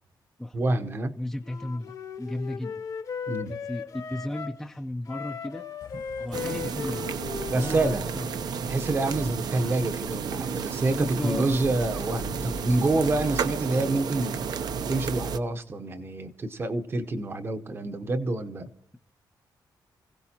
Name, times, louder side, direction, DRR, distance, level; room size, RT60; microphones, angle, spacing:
voice 1, 0.5-1.1 3.3-3.5 7.5-8.0 8.7-14.4 14.9-18.7, right 2 dB, 30° right, 0.9 m, -27 dB
voice 2, 1.2-2.8 3.4-5.7 6.2-7.1 7.6-7.8 8.1-8.2 9.6-9.7 10.9-11.6, left 1 dB, 5° left, 0.5 m, -34 dB
Wind instrument woodwind instrument, 1.4-4.6 5.1-8.4, left 6 dB, 45° left, 1.0 m, -37 dB
Bird / Rain, 5.8-14.0, left 5 dB, 75° left, 2.0 m, -50 dB
sound 1, 6.3-15.4, right 6 dB, 55° right, 0.7 m, -32 dB
26.5 x 16.5 x 2.9 m
wide cardioid pair, 175°, 8 cm